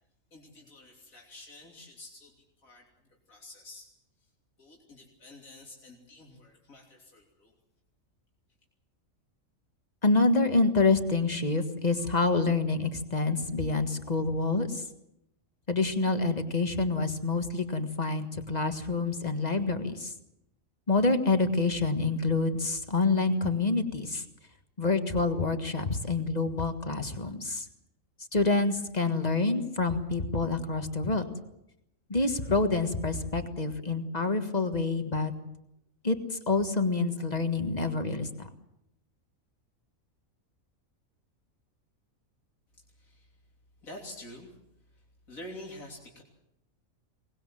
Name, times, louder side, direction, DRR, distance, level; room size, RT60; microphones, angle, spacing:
voice 1, 0.3-3.9 4.6-7.6 42.9-43.4 43.8-44.6 44.9-46.2, left 1 dB, 85° left, -1 dB, 3.7 m, -48 dB
voice 2, 10.0-14.8 15.7-20.1 20.9-24.2 24.8-27.6 28.3-31.3 32.1-35.3 36.0-38.5, left 3 dB, 30° left, 8 dB, 1.7 m, -27 dB
23.0 x 19.5 x 7.7 m, 0.82 s
omnidirectional pair, 1.4 m